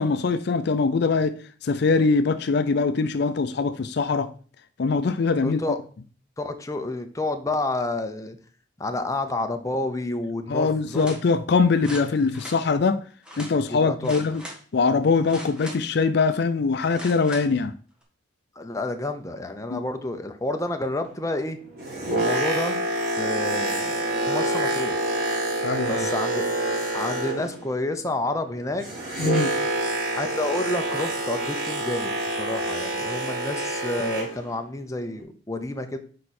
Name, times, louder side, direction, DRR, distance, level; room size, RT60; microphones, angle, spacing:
voice 1, 0.0-4.3 4.8-5.6 10.5-13.0 13.4-14.4 14.7-17.7 19.7-19.8 25.6-26.1 29.2-29.5, left 4 dB, 60° left, 0.4 m, -22 dB
voice 2, 5.4-5.8 6.4-8.4 8.8-11.1 13.7-14.2 18.6-21.6 22.1-22.8 23.2-24.0 24.3-25.0 25.9-26.5 26.9-28.9 30.1-36.0, left 2 dB, 15° left, 0.7 m, -29 dB
sound 1, 10.9-11.2 11.8-12.6 13.3-13.5 14.0-14.6 15.2-16.0 16.9-17.5 18.0-18.1, equal, 5° right, 1.4 m, -40 dB
Boat Water vehicle, 21.6-27.7 28.0-34.5 35.1-35.2, right 1 dB, 55° right, 3.6 m, -27 dB
6.6 x 5.2 x 4.3 m
head